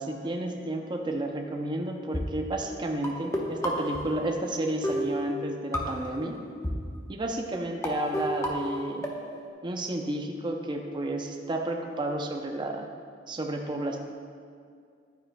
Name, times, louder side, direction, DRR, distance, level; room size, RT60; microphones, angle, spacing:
voice 1, 0.0-6.4 7.1-9.1 9.6-12.9 13.3-14.0, right 1 dB, 25° right, 2 dB, 0.5 m, -31 dB
sound 1, 2.1-2.2 3.0-4.6 4.8-6.2 6.6-6.7 7.5-7.6 7.8-9.5, equal, 15° left, 0.9 m, -31 dB
11.0 x 9.1 x 2.2 m, 2.2 s
head